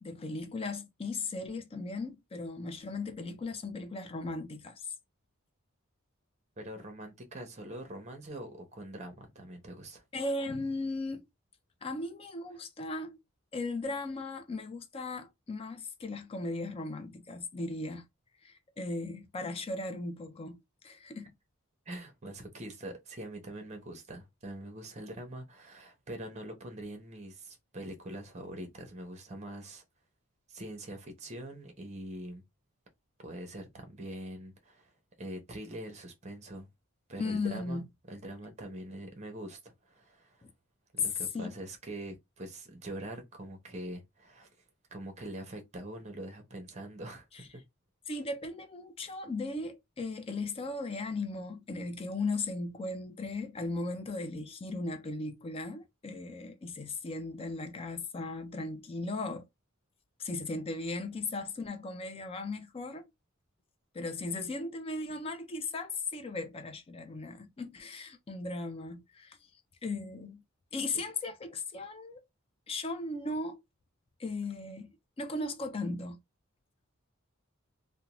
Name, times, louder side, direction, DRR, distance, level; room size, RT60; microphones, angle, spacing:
voice 1, 0.0-4.9 10.1-11.3 11.8-13.2 13.5-18.1 18.4-21.3 37.2-37.9 40.4-40.5 41.3-41.5 48.1-59.5 60.2-63.1 63.9-69.4 69.8-70.4 70.7-72.2 72.7-73.6 74.2-76.2, left 2 dB, 25° left, 0.4 m, -37 dB
voice 2, 6.6-10.0 21.9-29.8 30.5-32.4 33.2-34.9 35.2-36.7 37.1-40.4 40.9-44.5 44.9-47.6, right 1 dB, 35° right, 0.8 m, -43 dB
2.5 x 2.1 x 2.9 m
head